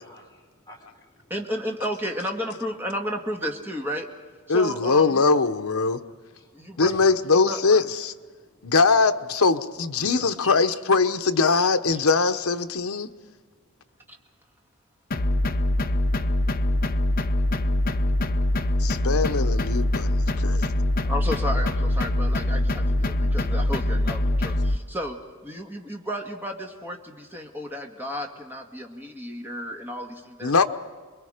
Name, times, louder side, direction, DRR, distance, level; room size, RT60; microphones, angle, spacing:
voice 1, 0.1-1.3 6.3-7.0 8.3-8.7 10.2-10.3, left 1 dB, 20° left, 4.3 m, -50 dB
voice 2, 1.3-4.1 4.5-5.2 6.5-6.9 7.4-7.6 10.0-10.5 14.1-14.2 21.0-30.6, equal, 10° right, 2.0 m, -33 dB
voice 3, 4.5-6.0 6.8-8.1 8.6-13.1 18.8-20.7 30.4-30.6, left 4 dB, 70° left, 0.9 m, -22 dB
sound 1, 15.1-24.8, left 1 dB, 40° left, 0.8 m, -23 dB
28.5 x 22.5 x 5.1 m
head